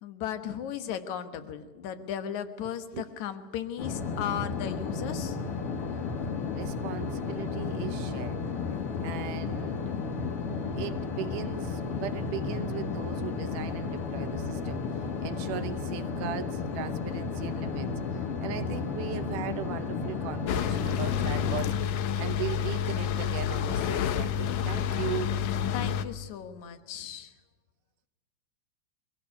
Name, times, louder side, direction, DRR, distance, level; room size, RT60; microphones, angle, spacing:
voice 1, 0.0-5.4 14.6-14.8 25.7-27.3, left 9 dB, 70° left, 10 dB, 2.6 m, -36 dB
sound 1, 3.8-21.7, left 5 dB, 55° left, 2.1 m, -33 dB
voice 2, 6.5-8.4 9.0-9.9 10.8-14.8 15.2-25.3, right 12 dB, 85° right, 10 dB, 2.4 m, -38 dB
sound 2, 20.5-26.0, left 9 dB, 90° left, 2.6 m, -29 dB
23.5 x 17.0 x 9.7 m, 1.2 s
omnidirectional pair, 3.6 m